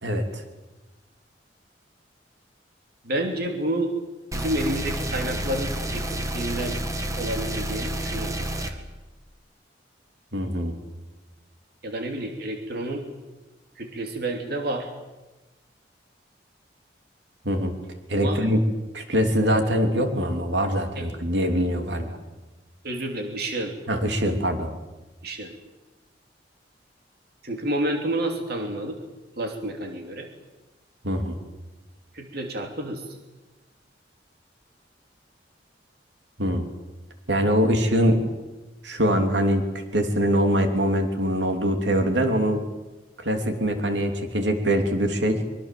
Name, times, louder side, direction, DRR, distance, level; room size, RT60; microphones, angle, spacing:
voice 1, 0.0-0.4 10.3-10.8 17.4-17.7 18.1-18.6 18.9-22.2 23.9-24.7 31.0-31.4 36.4-36.6 37.3-38.3 38.8-39.6 39.9-42.6 43.2-45.4, equal, 75° right, 5 dB, 3.2 m, -23 dB
voice 2, 3.0-3.9 4.3-6.8 7.2-8.8 11.8-13.0 13.8-14.9 18.2-18.4 21.0-21.1 22.8-23.7 25.2-25.5 27.4-29.0 29.4-30.3 32.1-33.2, right 1 dB, 60° right, 3 dB, 3.0 m, -29 dB
sound 1, 4.3-8.7, right 1 dB, 20° right, 2.1 m, -29 dB
24.5 x 23.0 x 7.7 m, 1.1 s
head